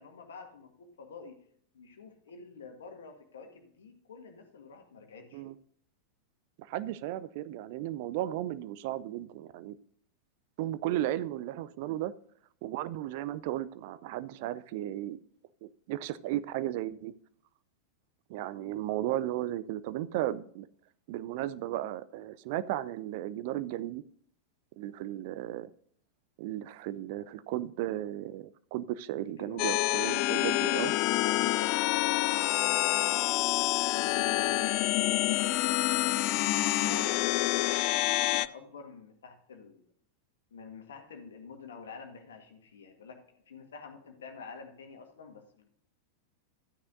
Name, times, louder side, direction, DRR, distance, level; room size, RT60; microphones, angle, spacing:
voice 1, 0.0-1.4 1.7-5.4 29.2-29.8 31.2-35.5 36.1-39.8 40.5-43.2 43.5-45.7, left 5 dB, 65° left, 5 dB, 1.7 m, -48 dB
voice 2, 6.7-9.8 10.6-12.1 12.6-15.2 15.6-17.1 18.3-20.7 21.1-24.0 24.8-25.7 26.4-30.9 36.8-37.0, right 13 dB, 50° right, 15 dB, 0.5 m, -35 dB
sound 1, 29.6-38.5, left 17 dB, 40° left, 0.4 m, -27 dB
13.0 x 9.5 x 2.6 m, 0.63 s
figure-of-eight pair, 90°, 0 cm